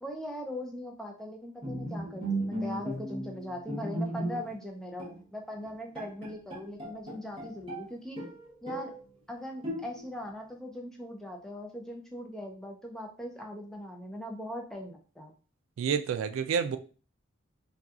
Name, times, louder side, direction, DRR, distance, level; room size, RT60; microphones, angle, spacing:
voice 1, 0.0-8.2 8.6-8.9 9.3-15.3, left 1 dB, 5° left, 0.4 m, -40 dB
Bowed string instrument, 1.6-4.7 5.0-5.2 5.6-5.7 5.9-7.9 8.2-9.0 9.6-10.2, right 1 dB, 25° right, 0.9 m, -36 dB
voice 2, 15.8-16.8, right 7 dB, 75° right, 0.3 m, -29 dB
2.8 x 2.3 x 3.5 m
head